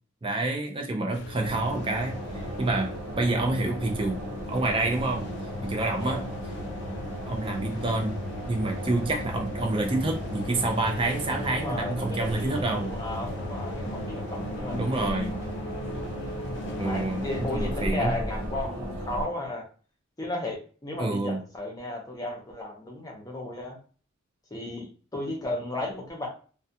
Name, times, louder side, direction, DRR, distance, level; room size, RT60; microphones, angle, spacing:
voice 1, 0.2-2.9 3.2-4.2 4.5-5.3 5.6-6.2 7.3-8.2 8.5-12.9 14.7-15.4 16.8-18.1 21.0-21.4, right 2 dB, 25° right, 2 dB, 0.4 m, -28 dB
sound 1, 1.1-17.9, left 2 dB, 55° left, 0.3 m, -39 dB
sound 2, 1.4-19.3, equal, 75° right, 0.9 m, -36 dB
voice 2, 5.9-6.4 11.5-15.3 16.8-19.6 20.2-23.8 24.5-26.3, left 2 dB, 20° left, -1 dB, 0.7 m, -34 dB
2.3 x 2.1 x 2.7 m, 0.39 s
head